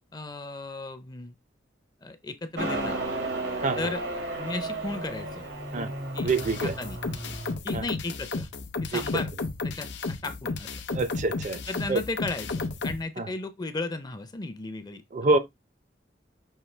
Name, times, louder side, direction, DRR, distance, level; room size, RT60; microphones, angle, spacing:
voice 1, 0.1-1.4 2.0-3.0 3.8-4.0 4.4-5.5 6.1-6.3 6.6-7.0 7.6-8.5 8.8-9.3 9.6-10.8 11.0-11.1 11.7-15.4, left 3 dB, 20° left, 0.5 m, -35 dB
Motorcycle, 2.6-7.6, right 2 dB, 90° right, 1.6 m, -33 dB
sound 1, 6.2-13.0, left 3 dB, 70° left, 0.6 m, -33 dB
voice 2, 6.2-6.7 7.7-7.8 8.9-9.0 10.9-11.6 11.9-12.0 13.2-13.3 15.1-15.4, right 3 dB, 40° right, 0.5 m, -25 dB
5.6 x 2.6 x 3.2 m
head